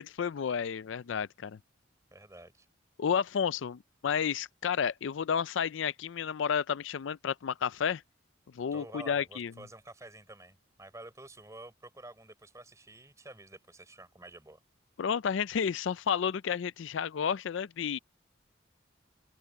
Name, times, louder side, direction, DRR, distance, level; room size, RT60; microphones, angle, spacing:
voice 1, 0.0-1.6 3.0-8.0 8.5-9.5 15.0-18.0, left 7 dB, 75° left, 0.4 m, -31 dB
voice 2, 2.1-2.7 8.7-14.6, right 2 dB, 15° right, 4.4 m, -49 dB
open air
head